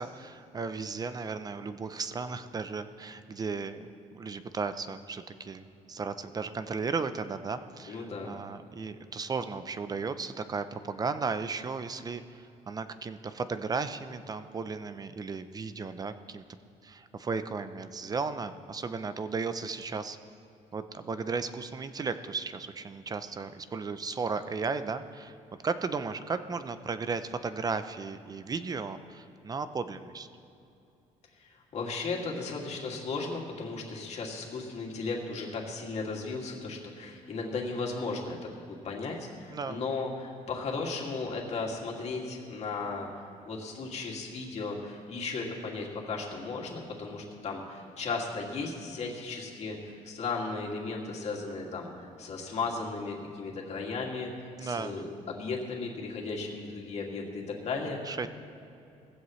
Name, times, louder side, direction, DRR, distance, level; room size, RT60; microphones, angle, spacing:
voice 1, 0.0-16.4 16.8-20.2 20.7-25.3 25.6-30.3 39.5-39.8 54.6-55.0 58.1-58.3, right 4 dB, 25° right, 11 dB, 0.6 m, -35 dB
voice 2, 7.9-8.3 31.4-43.1 43.5-58.0, left 4 dB, 50° left, -1 dB, 2.4 m, -35 dB
18.0 x 15.5 x 3.2 m, 2.7 s
cardioid pair, 120°, 14 cm